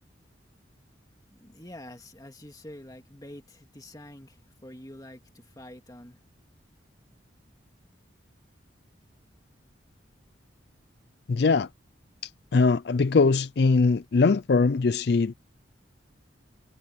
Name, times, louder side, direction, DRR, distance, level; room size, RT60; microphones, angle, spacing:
voice 1, 1.3-6.2, left 1 dB, 20° left, 2.3 m, -46 dB
voice 2, 11.3-11.7 12.5-15.3, left 4 dB, 55° left, 0.4 m, -21 dB
head